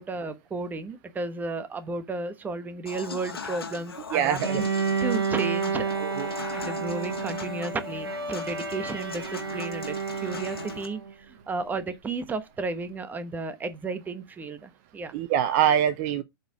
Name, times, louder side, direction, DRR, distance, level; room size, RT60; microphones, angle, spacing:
voice 1, 0.0-4.7 5.0-10.0 10.2-15.1, right 3 dB, 15° right, 1.2 m, -33 dB
Human voice / Acoustic guitar / Piano, 2.9-10.9, left 5 dB, 85° left, 1.9 m, -40 dB
voice 2, 4.1-4.6 6.0-6.3 15.1-16.2, right 10 dB, 45° right, 0.8 m, -24 dB
Bowed string instrument, 4.4-11.1, right 5 dB, 80° right, 1.4 m, -30 dB
7.8 x 4.3 x 4.9 m
figure-of-eight pair, 105°, 12 cm